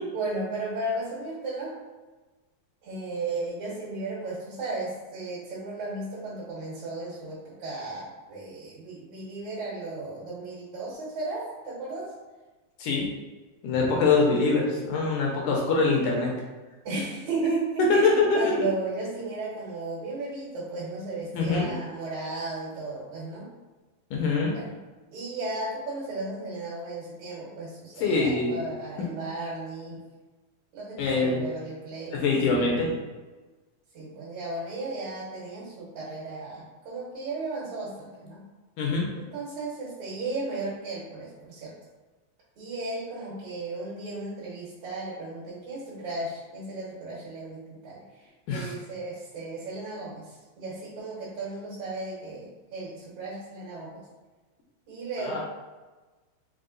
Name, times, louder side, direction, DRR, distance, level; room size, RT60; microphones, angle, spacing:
voice 1, 0.1-1.7 2.8-12.1 16.8-23.5 24.5-24.8 25.1-30.0 30.7-32.3 33.9-38.4 39.2-41.8 42.6-54.0 54.9-55.4, right 2 dB, 60° right, -7 dB, 2.2 m, -35 dB
voice 2, 13.6-16.3 18.0-18.5 21.3-21.7 24.1-24.5 28.0-28.6 31.0-31.5 32.1-32.9 38.8-39.1 48.5-48.7 55.2-55.4, left 4 dB, 75° left, -2 dB, 2.0 m, -24 dB
5.5 x 2.0 x 3.8 m, 1.2 s
omnidirectional pair, 4.1 m